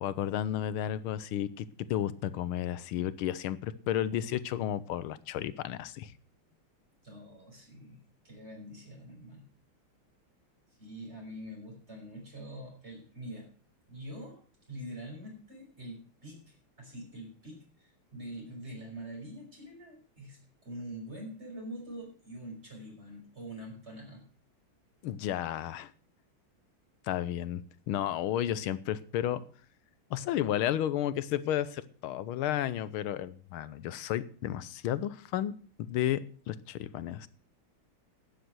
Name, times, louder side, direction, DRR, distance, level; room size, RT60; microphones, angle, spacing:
voice 1, 0.0-6.1 25.0-25.9 27.1-29.4 30.1-35.5 35.9-36.2 36.5-37.3, left 11 dB, 85° left, 16 dB, 1.6 m, -32 dB
voice 2, 7.0-8.0 8.2-9.4 10.8-13.5 13.9-14.4 14.7-24.2, right 1 dB, 30° right, 0 dB, 5.7 m, -45 dB
12.0 x 9.2 x 6.3 m, 0.43 s
omnidirectional pair, 2.3 m